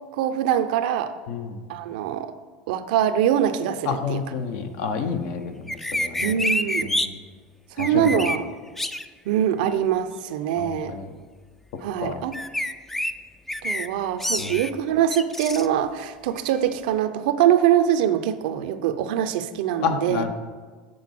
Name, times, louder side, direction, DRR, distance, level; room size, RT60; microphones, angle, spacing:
voice 1, 0.1-1.1 1.7-2.3 2.7-4.2 6.2-6.9 7.8-8.5 9.3-11.0 11.8-12.4 13.6-20.3, right 10 dB, 75° right, 10 dB, 0.5 m, -23 dB
voice 2, 1.3-1.6 3.9-6.3 6.8-7.2 7.8-8.2 10.6-11.1 12.0-12.2 14.4-14.6 19.8-20.3, left 6 dB, 65° left, 7 dB, 0.8 m, -29 dB
sound 1, 5.7-7.1 7.8-8.4 8.8-9.1 12.3-13.1 13.5-13.9 14.2-14.7 15.1-15.7, left 1 dB, 5° left, 0.3 m, -27 dB
7.6 x 4.1 x 5.9 m, 1.5 s
hypercardioid pair, 95°, 5 cm